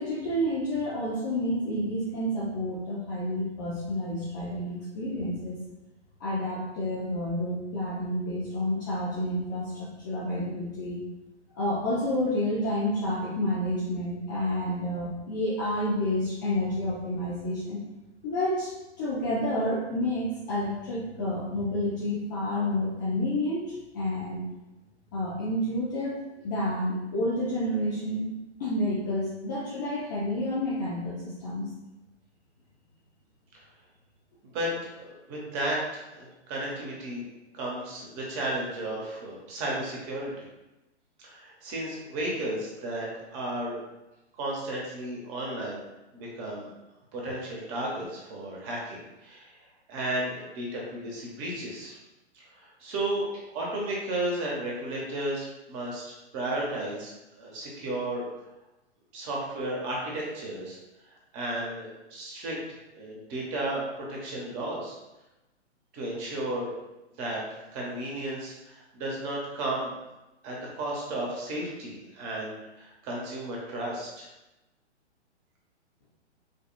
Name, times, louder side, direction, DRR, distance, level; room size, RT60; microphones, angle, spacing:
voice 1, 0.0-5.6 6.2-11.0 11.6-17.8 18.2-18.7 19.0-24.4 25.1-28.3 28.6-31.7, left 1 dB, 20° left, -8 dB, 0.4 m, -29 dB
voice 2, 35.0-37.2 37.5-40.3 41.2-43.1 43.3-43.8 44.4-45.8 46.1-46.7 47.1-49.5 49.9-52.0 52.3-56.0 56.3-58.2 59.1-60.8 61.3-65.0 65.9-66.7 67.2-67.4 67.7-69.9 70.4-74.3, right 1 dB, 30° right, -3 dB, 0.9 m, -33 dB
4.9 x 2.3 x 2.2 m, 1.0 s
figure-of-eight pair, 120°, 34 cm